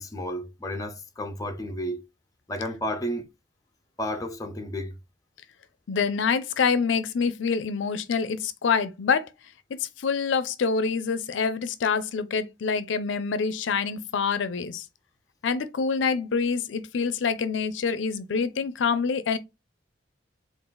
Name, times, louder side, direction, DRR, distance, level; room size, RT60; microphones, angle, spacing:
voice 1, 0.0-2.0 2.5-3.3 4.0-5.0, equal, 20° left, 0.6 m, -32 dB
voice 2, 5.9-9.3 10.0-14.8 15.4-19.4, left 5 dB, 80° left, 0.5 m, -26 dB
3.8 x 2.5 x 3.8 m
head